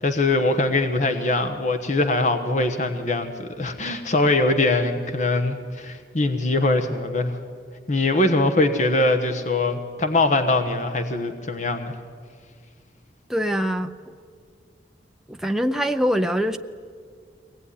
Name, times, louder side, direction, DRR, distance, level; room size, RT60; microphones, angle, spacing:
voice 1, 0.0-7.4 7.9-11.9, left 2 dB, 45° left, 7 dB, 1.2 m, -22 dB
voice 2, 13.3-14.1 15.3-16.6, equal, ahead, 5 dB, 0.6 m, -24 dB
23.0 x 18.5 x 10.0 m, 2.1 s
head